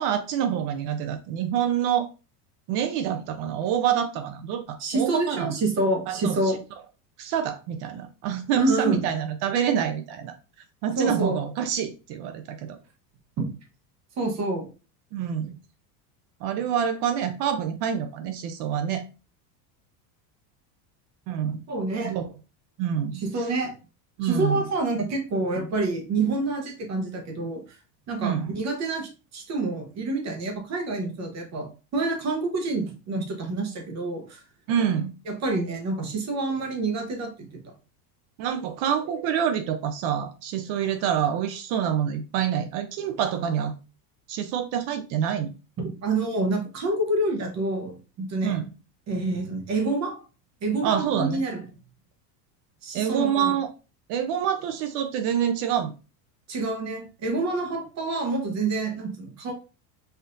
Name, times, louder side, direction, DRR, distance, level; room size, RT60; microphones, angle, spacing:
voice 1, 0.0-2.1 2.7-5.5 6.1-6.4 7.2-10.3 10.8-12.8 15.1-15.5 16.4-19.0 21.3-21.6 22.0-22.3 22.8-23.5 24.2-24.6 28.2-28.5 34.7-35.1 38.4-43.7 44.3-45.5 48.4-48.6 50.8-51.4 52.9-53.7 54.1-55.9, right 9 dB, 60° right, 0.6 m, -26 dB
voice 2, 4.8-6.6 8.5-9.1 11.0-11.4 13.4-13.5 14.2-14.7 21.7-22.2 23.1-23.7 24.2-27.6 28.1-31.7 31.9-34.4 35.3-37.3 37.6-37.7 45.8-48.6 49.1-50.2 50.6-51.7 52.8-53.5 56.5-59.5, right 2 dB, 35° right, 0.8 m, -27 dB
4.2 x 2.6 x 2.5 m
supercardioid pair, 135°, 48 cm